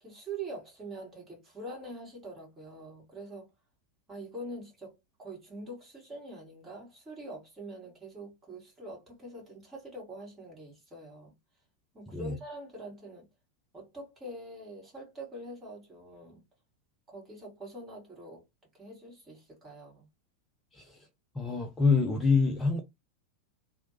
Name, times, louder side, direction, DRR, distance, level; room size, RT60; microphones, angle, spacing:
voice 1, 0.0-3.5 4.1-4.9 5.2-11.3 11.9-13.3 13.7-16.4 17.1-18.4 18.7-20.1, right 2 dB, 15° right, 1.7 m, -44 dB
voice 2, 21.4-22.8, left 4 dB, 10° left, 0.5 m, -26 dB
3.0 x 2.0 x 2.8 m
figure-of-eight pair, 90°, 0 cm